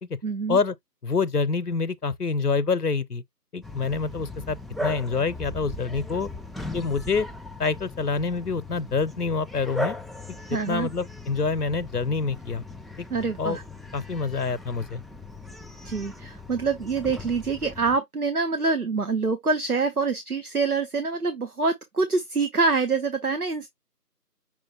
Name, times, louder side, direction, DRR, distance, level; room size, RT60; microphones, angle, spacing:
voice 1, 0.2-0.6 10.5-10.9 13.1-13.6 15.8-23.7, right 4 dB, 60° right, 1.0 m, -25 dB
voice 2, 1.0-3.2 3.5-6.3 6.7-7.3 7.6-10.0 10.3-10.4 10.7-12.6 13.4-13.6 13.9-15.0, left 4 dB, 65° left, 0.7 m, -26 dB
Bark, 3.6-18.0, left 1 dB, ahead, 0.4 m, -38 dB
6.1 x 2.1 x 4.2 m
figure-of-eight pair, 175°, 49 cm